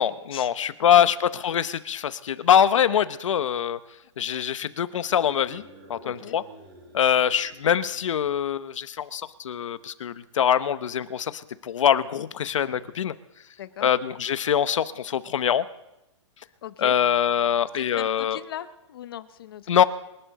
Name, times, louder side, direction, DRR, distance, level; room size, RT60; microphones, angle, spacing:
voice 1, 0.0-3.8 4.2-5.6 5.9-6.4 6.9-13.1 13.8-15.6 16.8-18.4 19.7-19.8, left 9 dB, 75° left, 14 dB, 0.9 m, -23 dB
sound 1, 5.0-8.6, right 1 dB, 50° right, 6.4 m, -51 dB
voice 2, 6.0-6.4 13.6-13.9 16.6-17.0 17.7-19.6, left 11 dB, 45° left, 13 dB, 0.8 m, -39 dB
24.5 x 11.5 x 4.1 m, 0.90 s
hypercardioid pair, 175°, 16 cm